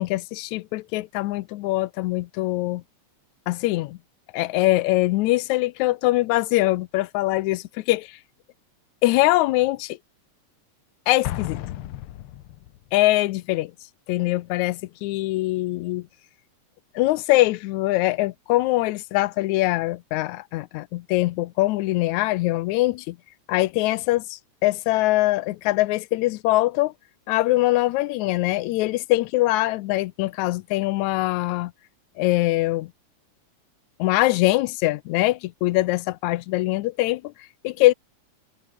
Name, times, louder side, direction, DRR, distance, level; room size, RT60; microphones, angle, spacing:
voice 1, 0.0-2.8 3.5-4.0 4.3-8.1 9.0-10.0 11.1-11.6 12.9-13.7 14.1-16.0 17.0-23.2 23.5-26.9 27.3-31.7 32.2-32.9 34.0-37.2 37.6-37.9, left 18 dB, 85° left, 2.0 m, -22 dB
Explosion, 11.2-12.9, left 13 dB, 70° left, 1.4 m, -33 dB
omnidirectional pair, 3.3 m